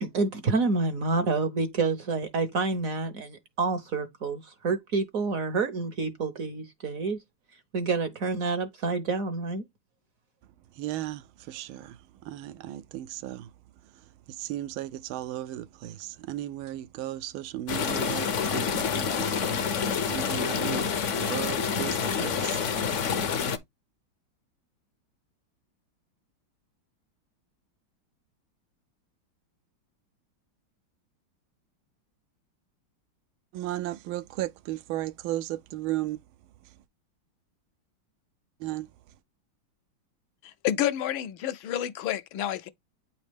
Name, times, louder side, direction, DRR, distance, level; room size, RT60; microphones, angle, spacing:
voice 1, 0.0-7.2 7.7-9.6, right 3 dB, 55° right, 1.0 m, -28 dB
voice 2, 10.8-13.5 14.3-19.8 20.1-22.9 33.5-36.2 38.6-38.9, right 14 dB, 80° right, 1.4 m, -35 dB
sound 1, 17.7-23.6, left 6 dB, 55° left, 0.8 m, -28 dB
voice 3, 40.4-42.7, left 11 dB, 75° left, 1.4 m, -29 dB
9.1 x 4.2 x 3.3 m
omnidirectional pair, 2.3 m